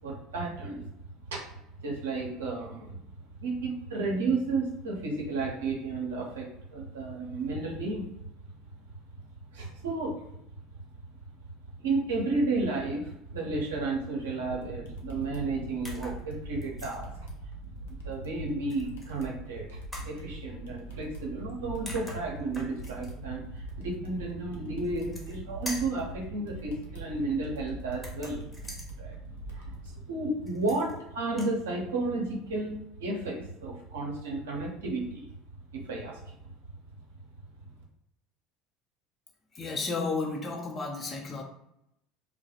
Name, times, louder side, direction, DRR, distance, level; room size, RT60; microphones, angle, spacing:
voice 1, 0.0-0.9 1.2-1.4 1.8-3.0 3.4-8.1 9.5-10.2 11.8-17.3 17.9-19.8 20.0-28.4 29.0-29.2 29.5-35.3 35.7-36.3, right 3 dB, 80° right, -1 dB, 0.6 m, -32 dB
sound 1, 14.5-29.9, right 2 dB, 80° left, 0.5 m, -43 dB
sound 2, 15.8-16.2 16.6-17.0 18.7-19.3 19.9-20.1 21.5-21.6 21.9-23.1 24.8-25.4 25.7-26.0 27.9-28.9 30.5-31.0 31.3-31.6, equal, 5° left, 0.8 m, -43 dB
voice 2, 39.5-41.4, left 3 dB, 35° left, 2 dB, 0.6 m, -32 dB
2.3 x 2.1 x 2.7 m, 0.79 s
hypercardioid pair, 70°, 0 cm